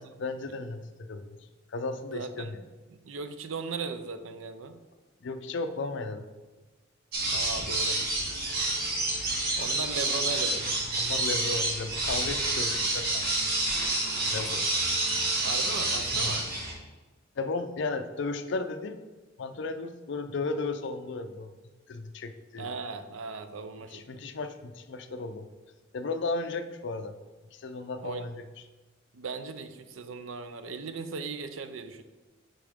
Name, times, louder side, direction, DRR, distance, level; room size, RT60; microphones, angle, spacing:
voice 1, 0.0-1.4 1.7-2.6 5.2-6.3 11.0-13.2 14.3-14.7 16.1-16.4 17.4-19.0 19.4-21.5 21.9-22.7 23.9-25.5 25.9-27.1 27.5-28.7, left 3 dB, 65° left, 8 dB, 0.5 m, -35 dB
voice 2, 2.1-2.5 2.9-4.8 7.3-8.0 9.6-10.7 15.4-16.5 22.6-24.2 28.0-28.3 29.1-32.0, right 4 dB, 85° right, 10 dB, 0.6 m, -37 dB
sound 1, 7.1-16.7, right 2 dB, 50° right, 1.7 m, -28 dB
9.9 x 3.8 x 3.6 m, 1.3 s
head